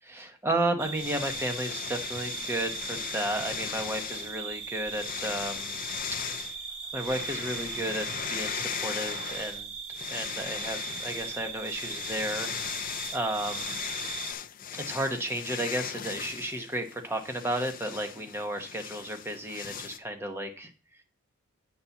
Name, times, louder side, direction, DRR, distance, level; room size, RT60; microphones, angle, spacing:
voice 1, 0.1-5.8 6.9-9.7 10.1-12.7 13.1-13.8 14.7-20.7, right 1 dB, 10° right, 5 dB, 1.0 m, -33 dB
sound 1, 0.8-14.3, right 6 dB, 70° right, 1.2 m, -39 dB
sound 2, 1.0-4.3 4.9-6.5 7.0-9.6 9.9-20.0, left 9 dB, 40° left, 0.5 m, -38 dB
8.7 x 4.1 x 7.0 m, 0.38 s
head